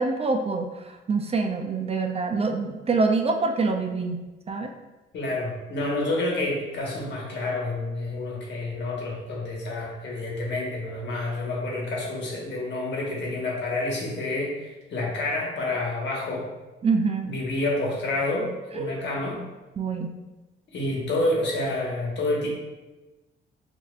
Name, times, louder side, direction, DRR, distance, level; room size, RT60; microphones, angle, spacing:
voice 1, 0.0-4.7 16.8-17.3 18.7-18.9 19.8-20.1, right 4 dB, 30° right, 5 dB, 0.4 m, -25 dB
voice 2, 5.1-16.5 17.2-19.4 20.7-22.5, left 2 dB, 65° left, -3 dB, 1.3 m, -28 dB
5.1 x 2.7 x 2.4 m, 1.1 s
cardioid pair, 90°, 20 cm